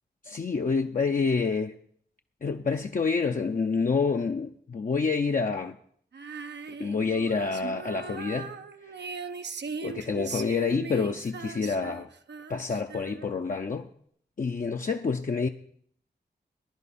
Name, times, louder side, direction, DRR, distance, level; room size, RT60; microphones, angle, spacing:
voice 1, 0.2-1.7 2.4-5.8 6.8-8.5 9.8-12.1 12.5-13.9 14.4-15.5, left 4 dB, 50° left, 0.6 m, -28 dB
Female singing, 6.1-13.5, right 5 dB, 75° right, 0.8 m, -39 dB
16.0 x 10.5 x 4.3 m
cardioid pair, 50°, 18 cm